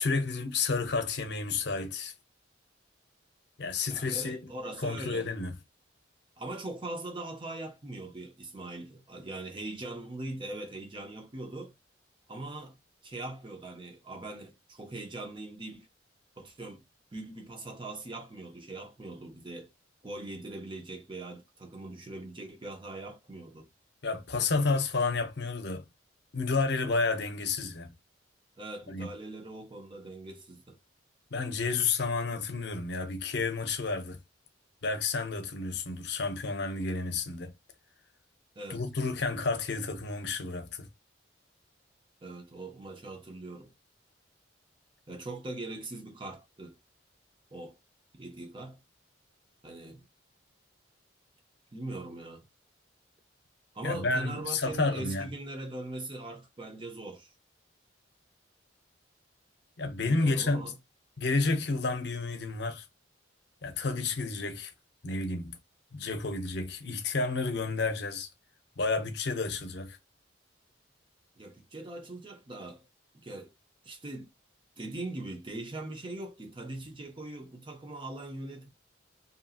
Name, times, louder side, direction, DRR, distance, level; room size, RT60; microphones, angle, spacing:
voice 1, 0.0-2.1 3.6-4.4 4.8-5.5 24.0-25.8 26.3-27.9 28.9-29.1 31.3-34.2 34.8-37.5 38.7-40.9 53.8-55.3 59.8-60.7 61.2-62.9 63.6-64.7 65.0-65.6 65.9-68.3 68.8-70.0, left 3 dB, 60° left, 0.6 m, -30 dB
voice 2, 3.9-5.3 6.4-11.7 12.3-12.8 13.0-15.9 16.4-16.8 17.1-19.7 20.0-23.7 28.6-30.8 38.6-38.8 42.2-43.7 45.1-46.7 47.5-47.8 48.1-48.8 49.6-50.0 51.7-52.5 53.7-57.3 60.0-60.7 71.4-72.9 73.1-73.5 73.8-74.3 74.8-78.7, right 2 dB, 25° right, 0.6 m, -41 dB
2.7 x 2.7 x 2.3 m
head